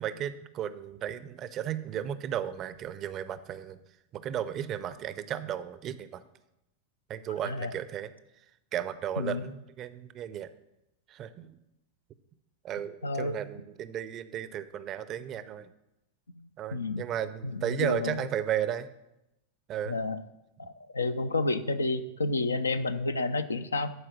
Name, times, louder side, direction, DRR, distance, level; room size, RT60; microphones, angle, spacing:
voice 1, 0.0-3.8 4.1-6.2 7.1-8.1 8.7-10.5 11.1-11.6 12.6-15.7 16.6-18.9 19.7-20.0, right 10 dB, 30° right, 14 dB, 0.5 m, -34 dB
voice 2, 9.2-9.5 13.0-13.4 16.4-17.0 17.4-18.3 19.9-20.2 20.6-23.9, left 3 dB, 75° left, 11 dB, 0.5 m, -30 dB
11.0 x 4.8 x 6.2 m, 0.89 s
figure-of-eight pair, 90°, 0 cm